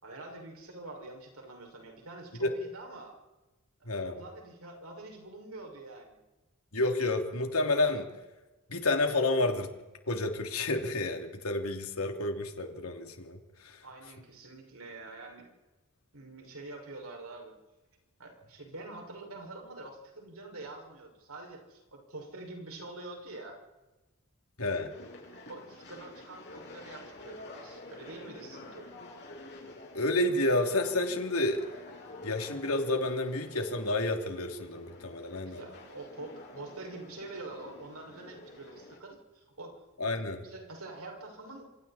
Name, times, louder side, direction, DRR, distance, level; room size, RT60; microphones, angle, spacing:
voice 1, 0.0-3.2 3.8-6.2 13.8-15.5 16.1-17.5 18.2-23.6 25.5-28.9 35.4-39.8 40.4-41.9, right 2 dB, 75° right, 2 dB, 6.1 m, -46 dB
voice 2, 3.8-4.2 6.7-8.1 8.7-9.7 10.1-13.4 13.6-13.8 24.6-24.9 29.9-31.6 32.2-35.6 40.0-40.4, left 2 dB, 75° left, 4 dB, 3.1 m, -30 dB
sound 1, 24.9-39.0, left 2 dB, 50° left, 7.0 m, -49 dB
27.5 x 27.0 x 4.4 m, 1.1 s
head